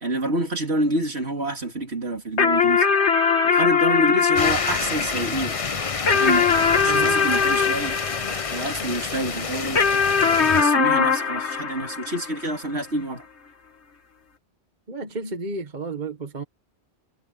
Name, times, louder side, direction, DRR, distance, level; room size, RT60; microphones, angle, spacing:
voice 1, 0.0-2.8 3.4-5.6 6.1-8.0 8.5-9.8 10.5-13.2, right 1 dB, 65° right, 3.4 m, -27 dB
sound 1, 2.4-9.1 9.8-12.6, left 6 dB, 70° left, 1.9 m, -21 dB
sound 2, 4.4-10.6, left 5 dB, 35° left, 0.8 m, -29 dB
voice 2, 6.8-7.2 14.9-16.4, right 3 dB, 40° right, 1.5 m, -32 dB
omnidirectional pair, 1.2 m